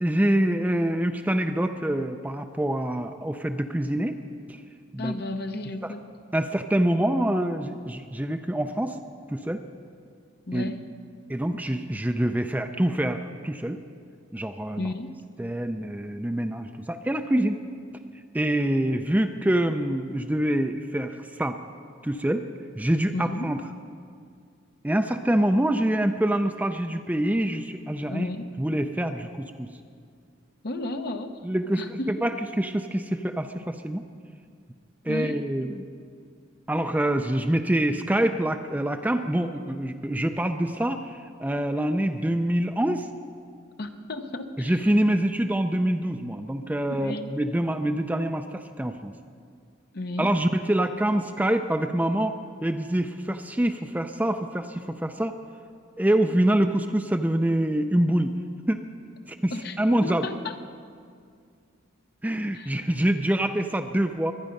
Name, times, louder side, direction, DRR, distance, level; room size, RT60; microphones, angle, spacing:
voice 1, 0.0-4.2 4.5-4.6 4.9-5.1 6.3-9.0 9.3-9.6 10.5-10.7 11.3-13.8 14.3-14.9 15.4-17.6 18.3-21.6 22.0-22.5 22.8-23.6 24.8-28.3 28.6-29.7 31.4-34.0 35.0-35.8 36.7-43.1 44.6-49.1 50.2-52.4 52.6-55.4 56.0-58.3 58.7-58.8 59.3-59.5 59.8-60.3 62.2-64.3, right 1 dB, 10° right, 7 dB, 0.4 m, -25 dB
voice 2, 5.0-6.0 10.5-10.8 14.8-15.2 23.1-23.5 28.1-28.5 30.6-31.4 31.8-32.2 35.0-35.4 43.8-44.9 46.9-47.3 49.9-50.3 59.5-60.6 62.5-62.7, left 2 dB, 50° left, 6 dB, 0.9 m, -33 dB
23.0 x 10.0 x 5.3 m, 2.3 s
head